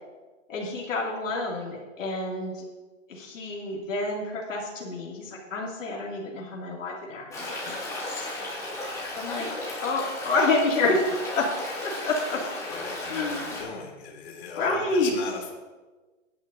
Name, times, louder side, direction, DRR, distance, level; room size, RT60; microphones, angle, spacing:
voice 1, 0.5-2.6 3.1-8.3 9.2-9.5 9.8-11.0 11.4-11.5 11.8-12.4 13.1-13.6 14.6-15.1, left 3 dB, 80° left, -3 dB, 2.7 m, -28 dB
Stream, 7.3-13.6, left 1 dB, 10° left, 3.4 m, -35 dB
voice 2, 12.7-15.5, left 5 dB, 55° left, -1 dB, 3.3 m, -39 dB
17.5 x 10.5 x 2.7 m, 1.3 s
hypercardioid pair, 150°, 38 cm